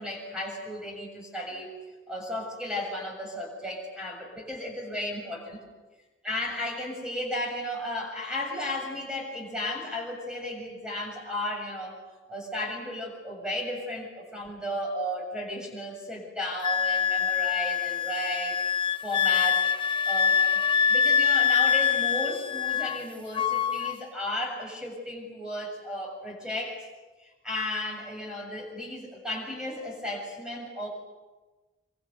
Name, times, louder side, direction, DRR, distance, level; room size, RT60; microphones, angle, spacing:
voice 1, 0.0-1.7 2.1-5.6 6.2-12.0 12.3-18.6 19.0-19.7 20.0-20.6 20.9-26.9 27.2-30.9, left 1 dB, 5° right, -1 dB, 7.3 m, -34 dB
Wind instrument woodwind instrument, 16.6-23.0 23.3-24.0, left 7 dB, 30° left, 0.8 m, -25 dB
26.5 x 26.0 x 8.2 m, 1.2 s
head